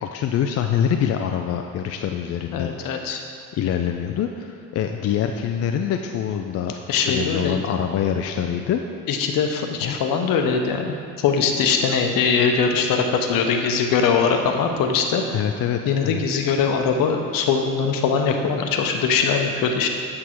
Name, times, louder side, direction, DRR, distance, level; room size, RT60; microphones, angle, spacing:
voice 1, 0.0-3.0 3.6-6.7 7.1-8.8 9.8-10.0 15.3-16.2, left 9 dB, 40° left, 4 dB, 0.4 m, -25 dB
voice 2, 2.5-3.2 6.9-7.8 9.1-15.2 15.9-19.9, left 5 dB, 60° left, 4 dB, 0.9 m, -21 dB
8.1 x 3.7 x 4.5 m, 2.7 s
hypercardioid pair, 70°, 39 cm